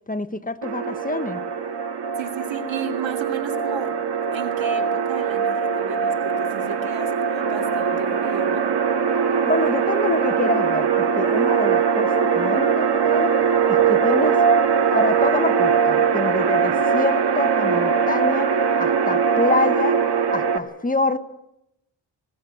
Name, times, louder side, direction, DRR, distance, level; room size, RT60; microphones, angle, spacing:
voice 1, 0.1-1.4 9.3-13.3 13.7-14.4 14.9-20.0 20.3-21.2, left 3 dB, 20° left, 10 dB, 1.0 m, -26 dB
sound 1, 0.6-20.6, right 6 dB, 60° right, 2.0 m, -21 dB
voice 2, 2.2-8.7, right 6 dB, 85° right, 5 dB, 2.8 m, -34 dB
20.0 x 18.0 x 9.1 m, 0.83 s
wide cardioid pair, 135°, 44 cm